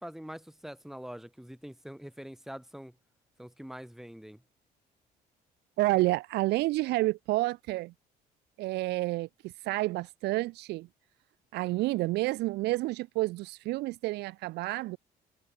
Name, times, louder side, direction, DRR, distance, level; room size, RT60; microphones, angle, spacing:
voice 1, 0.0-2.9 3.4-4.4, equal, ahead, 6.9 m, -44 dB
voice 2, 5.8-7.9 8.6-10.9 11.5-15.0, right 19 dB, 80° right, 0.7 m, -29 dB
cardioid pair, 110°, 17 cm